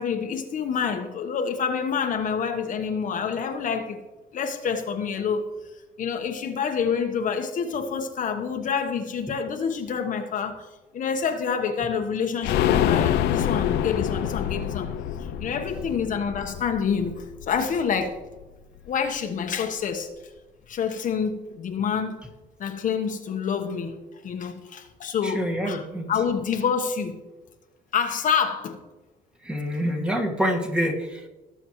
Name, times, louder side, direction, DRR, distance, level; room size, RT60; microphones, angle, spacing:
voice 1, 0.0-4.0 4.3-10.7 10.9-14.9 15.4-18.2 18.9-20.1 20.7-22.2 22.6-24.0 24.2-27.2 27.9-28.8, left 6 dB, 50° left, 5 dB, 1.1 m, -27 dB
sound 1, 12.4-18.1 18.4-18.5 18.8-18.9, left 10 dB, 80° left, 0.6 m, -26 dB
voice 2, 25.2-26.1 29.4-31.3, equal, 5° right, 1 dB, 1.7 m, -26 dB
18.0 x 7.1 x 3.1 m, 1.1 s
cardioid pair, 110°, 17 cm